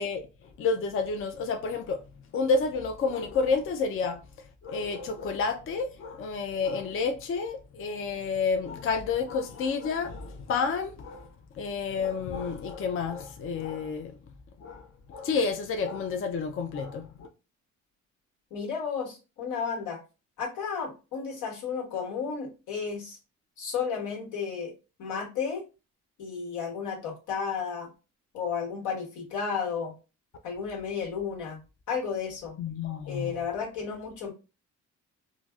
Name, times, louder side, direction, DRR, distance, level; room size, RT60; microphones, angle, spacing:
voice 1, 0.0-2.0 2.3-14.2 14.6-17.3 32.6-33.5, left 4 dB, 45° left, 0.4 m, -30 dB
voice 2, 18.5-20.0 20.4-23.2 23.6-24.7 25.0-25.6 26.2-27.9 28.3-29.9 30.4-31.6 31.9-32.6 33.1-34.3, left 6 dB, 85° left, 1.2 m, -33 dB
3.8 x 2.0 x 2.3 m
cardioid pair, 90°, 30 cm